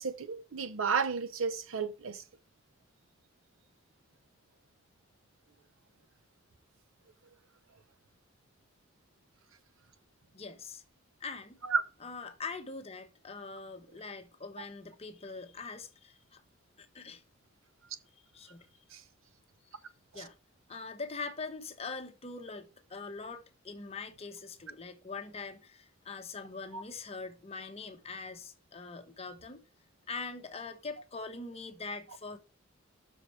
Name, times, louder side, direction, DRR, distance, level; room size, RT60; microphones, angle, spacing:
voice 1, 0.0-2.2 11.7-11.8 18.9-19.0 20.2-20.3 26.7-26.8, right 5 dB, 80° right, 0.8 m, -32 dB
voice 2, 10.3-10.8 11.2-11.6 12.0-16.4 16.8-17.2 18.3-18.7 19.7-19.8 20.1-20.4 20.7-29.6 30.1-32.4, left 4 dB, 30° left, 1.0 m, -43 dB
6.4 x 4.9 x 5.7 m
head